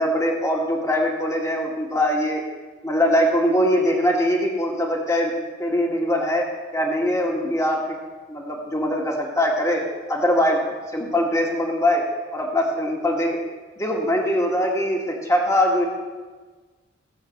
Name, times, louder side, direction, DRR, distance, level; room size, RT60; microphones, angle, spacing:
voice 1, 0.0-2.4 2.8-5.3 5.6-6.4 6.7-8.0 8.3-9.8 10.1-10.6 10.9-12.0 12.3-13.4 13.8-15.9, equal, 15° left, 0 dB, 1.8 m, -22 dB
17.0 x 7.2 x 6.6 m, 1.3 s
head